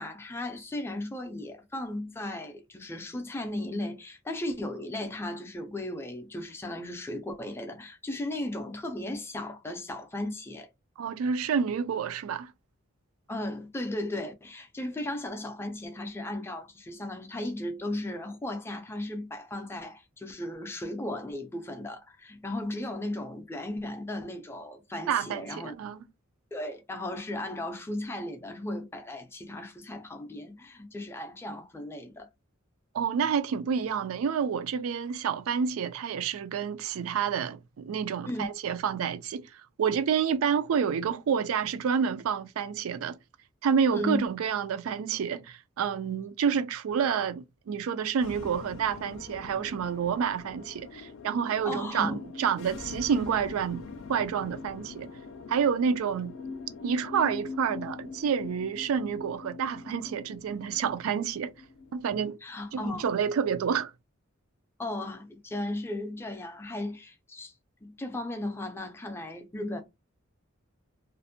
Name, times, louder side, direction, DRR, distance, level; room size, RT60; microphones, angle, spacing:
voice 1, 0.0-10.7 13.3-25.7 26.5-32.3 38.3-38.4 43.9-44.2 51.6-52.2 62.4-63.1 64.8-67.5 67.8-69.8, left 1 dB, 10° left, 0.4 m, -36 dB
voice 2, 11.0-12.5 25.1-26.1 32.9-43.2 43.6-55.1 55.5-56.3 56.8-61.5 61.9-62.4 62.7-63.9, right 7 dB, 85° right, 0.3 m, -29 dB
sound 1, 48.2-62.1, left 4 dB, 70° left, 0.5 m, -43 dB
2.5 x 2.1 x 2.6 m
head